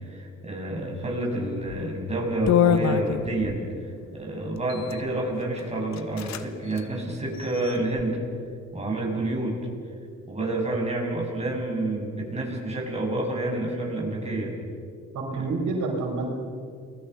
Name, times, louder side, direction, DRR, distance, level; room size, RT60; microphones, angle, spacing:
voice 1, 0.0-3.7 4.1-8.2 8.7-9.6 10.3-14.5 15.4-15.5, right 2 dB, 20° right, -1 dB, 7.5 m, -29 dB
sound 1, 1.6-1.9 2.5-3.6 4.6-5.0 5.6-5.7 5.9-6.4 6.7-6.8 7.3-8.0, left 9 dB, 65° left, 1.2 m, -25 dB
voice 2, 15.1-16.3, right 3 dB, 75° right, 0 dB, 5.5 m, -28 dB
29.0 x 21.5 x 5.8 m, 2.5 s
cardioid pair, 90°, 30 cm